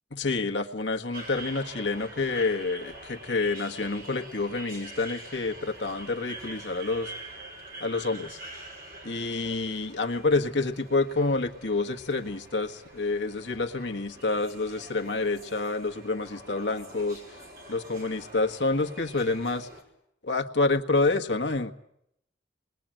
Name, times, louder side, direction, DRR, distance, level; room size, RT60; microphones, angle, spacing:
voice 1, 0.1-7.1 7.8-8.4 9.0-17.2 17.7-19.7 20.2-21.7, left 3 dB, 75° left, 5 dB, 1.6 m, -28 dB
sound 1, 1.1-19.8, right 1 dB, 50° right, 5.5 m, -45 dB
29.0 x 21.0 x 9.0 m, 0.79 s
head